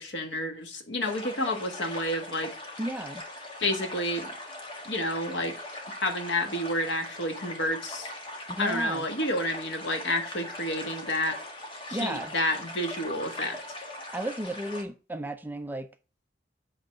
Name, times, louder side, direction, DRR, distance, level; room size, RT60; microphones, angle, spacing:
voice 1, 0.0-2.5 3.6-4.3 4.9-5.5 6.0-8.1 8.6-11.4 11.9-13.6, left 1 dB, 85° left, 1.6 m, -30 dB
sound 1, 1.0-14.8, left 1 dB, 30° left, 1.6 m, -40 dB
voice 2, 2.8-3.2 8.5-9.0 11.9-12.3 14.1-15.9, right 1 dB, 10° right, 0.6 m, -34 dB
7.9 x 3.9 x 5.9 m
head